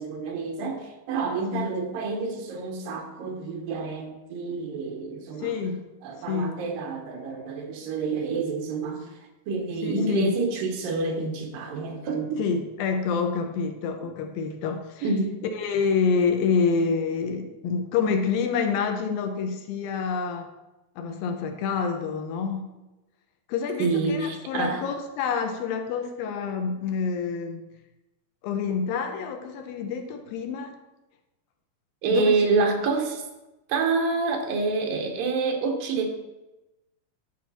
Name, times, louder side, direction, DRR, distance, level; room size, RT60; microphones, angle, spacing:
voice 1, 0.0-5.5 6.0-9.2 9.5-12.4 15.0-15.4 23.8-24.8 32.0-33.2 33.7-36.1, right 4 dB, 80° right, 3 dB, 2.8 m, -27 dB
voice 2, 5.4-5.8 6.3-6.6 9.8-10.3 12.4-15.1 15.6-20.5 21.0-22.7 23.5-27.6 28.4-30.8 32.1-32.4, left 5 dB, 90° left, 5 dB, 2.6 m, -27 dB
10.5 x 4.7 x 4.1 m, 1.0 s
omnidirectional pair, 4.1 m